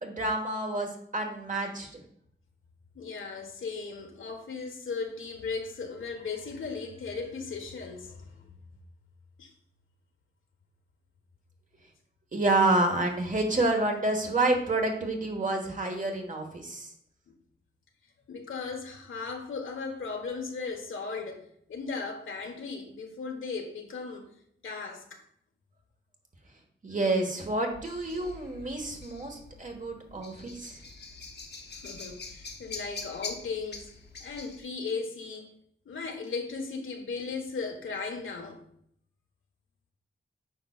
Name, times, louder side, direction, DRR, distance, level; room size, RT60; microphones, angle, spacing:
voice 1, 0.0-2.0 12.3-16.9 26.8-30.8, right 2 dB, 40° right, 1.4 m, -28 dB
voice 2, 2.9-8.4 9.4-9.5 18.3-24.3 24.6-25.2 31.8-33.9 34.2-35.5 35.8-38.6, left 4 dB, 85° left, 1.2 m, -37 dB
sound 1, 27.7-34.6, left 4 dB, 55° left, 1.0 m, -44 dB
8.8 x 5.5 x 2.4 m
wide cardioid pair, 95°, 20 cm